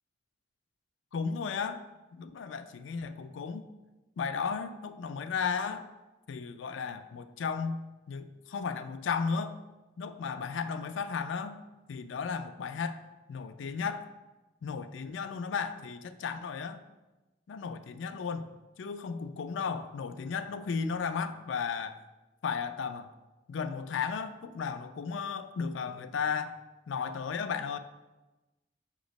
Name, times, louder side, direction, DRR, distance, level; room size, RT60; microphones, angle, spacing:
voice 1, 1.1-1.8 2.1-3.7 4.2-5.9 6.3-7.8 8.1-9.6 10.0-11.6 11.9-13.0 13.3-14.1 14.6-16.8 17.5-18.5 18.8-22.0 22.4-23.1 23.5-26.5 26.9-27.8, left 5 dB, 85° left, 10 dB, 0.4 m, -34 dB
6.1 x 3.0 x 5.2 m, 1.1 s
head